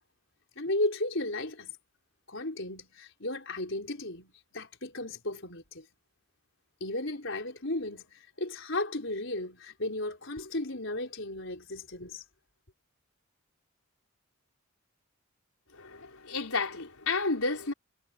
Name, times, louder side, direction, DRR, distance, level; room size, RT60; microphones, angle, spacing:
voice 1, 0.5-1.7 2.3-5.8 6.8-12.2, left 2 dB, 55° left, 5.2 m, -34 dB
voice 2, 15.7-17.7, left 3 dB, 80° left, 4.7 m, -31 dB
head